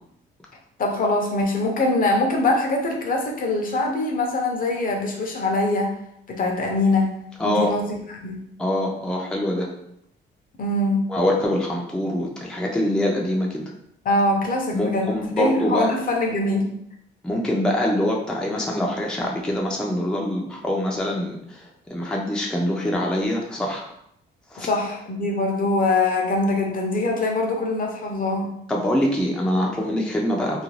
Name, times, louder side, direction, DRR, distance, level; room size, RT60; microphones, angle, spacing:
voice 1, 0.8-5.9 6.3-7.1 7.4-7.8 8.2-8.4 10.6-11.1 14.0-16.7 24.6-28.5, left 2 dB, 45° left, 1 dB, 0.6 m, -23 dB
voice 2, 7.4-7.7 8.6-9.7 11.1-13.7 14.7-15.9 17.2-23.9 24.5-24.7 28.7-30.6, left 1 dB, 5° left, -2 dB, 0.4 m, -24 dB
2.4 x 2.1 x 3.1 m, 0.74 s
cardioid pair, 90°, 20 cm